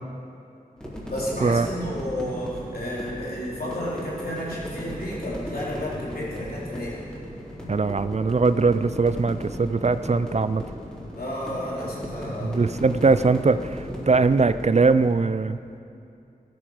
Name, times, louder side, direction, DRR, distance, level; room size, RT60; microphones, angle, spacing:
sound 1, 0.8-15.2, equal, 5° left, 3.9 m, -36 dB
voice 1, 1.1-7.0 11.1-13.0, equal, 85° left, -7 dB, 3.8 m, -32 dB
voice 2, 7.7-10.6 12.4-15.6, right 4 dB, 45° right, 13 dB, 0.5 m, -21 dB
14.5 x 9.4 x 6.4 m, 2.5 s
wide cardioid pair, 50°, 15 cm